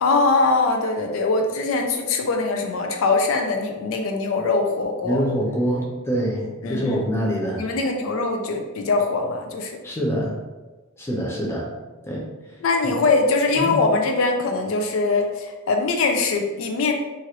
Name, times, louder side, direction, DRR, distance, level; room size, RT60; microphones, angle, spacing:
voice 1, 0.0-5.2 6.6-7.0 7.6-9.8 11.2-11.3 12.6-16.9, left 3 dB, 70° left, 4 dB, 0.4 m, -22 dB
voice 2, 5.0-7.6 9.8-10.3 11.0-11.7 12.0-12.2 12.8-12.9 13.6-13.7, equal, 10° left, -3 dB, 0.5 m, -25 dB
3.0 x 2.4 x 2.8 m, 1.2 s
head